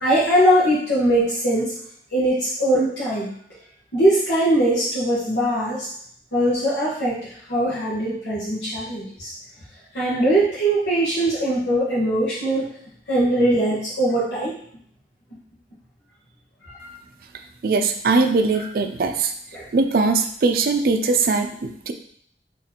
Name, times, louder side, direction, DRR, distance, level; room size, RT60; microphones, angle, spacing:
voice 1, 0.0-1.7 2.1-3.3 3.9-5.9 6.3-9.3 9.9-12.7 13.1-14.6 16.6-17.0 19.5-19.6, right 1 dB, 85° left, -10 dB, 1.3 m, -21 dB
voice 2, 17.6-19.3 19.7-21.9, right 3 dB, 55° right, 7 dB, 0.4 m, -20 dB
4.1 x 3.1 x 2.9 m, 0.63 s
head